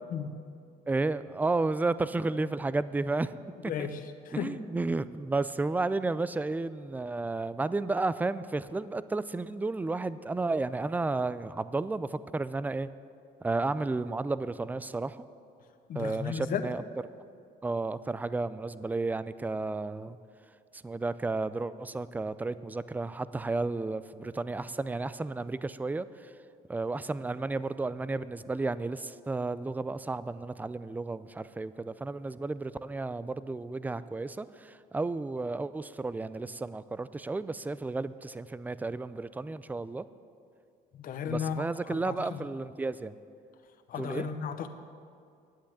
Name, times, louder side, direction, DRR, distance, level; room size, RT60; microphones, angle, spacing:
voice 1, 0.9-3.3 3.6-3.9 4.3-12.9 13.4-15.3 16.0-16.8 17.6-20.2 20.7-26.3 26.7-40.0 41.3-43.1 44.0-44.3, right 3 dB, 10° right, 15 dB, 0.4 m, -32 dB
voice 2, 3.6-4.0 4.2-4.6 15.9-16.7 40.9-41.7 42.1-42.4 43.9-44.7, left 7 dB, 55° left, 8 dB, 0.9 m, -34 dB
10.0 x 8.3 x 8.6 m, 2.4 s
cardioid pair, 110°, 17 cm